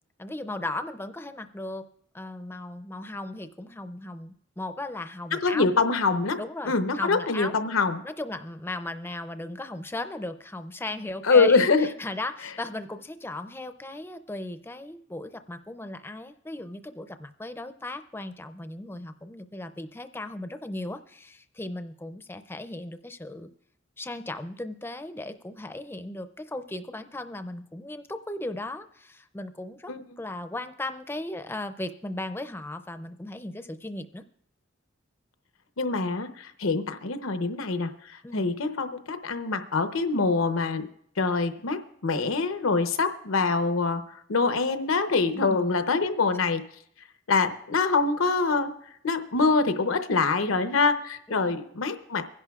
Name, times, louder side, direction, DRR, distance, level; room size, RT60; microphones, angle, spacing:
voice 1, 0.2-1.9 2.1-5.7 6.4-7.6 8.0-23.5 24.0-34.2 38.2-38.5 45.3-45.7, left 2 dB, 10° left, 9 dB, 0.4 m, -37 dB
voice 2, 5.3-6.4 6.6-8.0 11.2-11.9 29.9-30.0 35.8-40.9 41.2-44.0 44.3-46.6 47.3-48.7 49.0-52.2, left 4 dB, 90° left, 9 dB, 0.8 m, -24 dB
24.0 x 11.0 x 2.4 m, 0.70 s
head